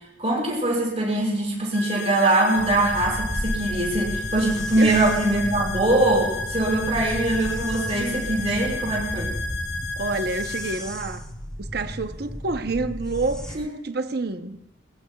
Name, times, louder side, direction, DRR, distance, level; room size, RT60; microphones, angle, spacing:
voice 1, 0.2-9.3 13.6-13.7, right 2 dB, 35° right, 5.1 m, -22 dB
sound 1, 1.7-10.7, left 3 dB, 75° left, 5.1 m, -32 dB
sound 2, 2.5-13.6, equal, 5° left, 1.1 m, -34 dB
voice 2, 4.8-5.1 10.0-11.2 11.6-14.6, right 3 dB, 55° right, 0.8 m, -28 dB
21.5 x 21.0 x 2.3 m
head